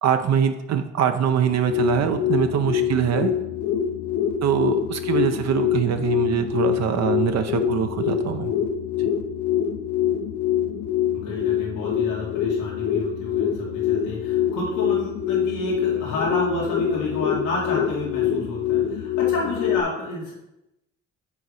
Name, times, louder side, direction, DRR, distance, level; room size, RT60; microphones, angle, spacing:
voice 1, 0.0-3.3 4.4-8.5 9.0-9.1, right 8 dB, 60° right, 7 dB, 0.6 m, -23 dB
sound 1, 1.4-19.8, left 10 dB, 70° left, 0.7 m, -25 dB
voice 2, 11.1-20.3, left 2 dB, 85° left, -4 dB, 1.7 m, -30 dB
6.9 x 3.9 x 4.8 m, 0.90 s
cardioid pair, 90°, 30 cm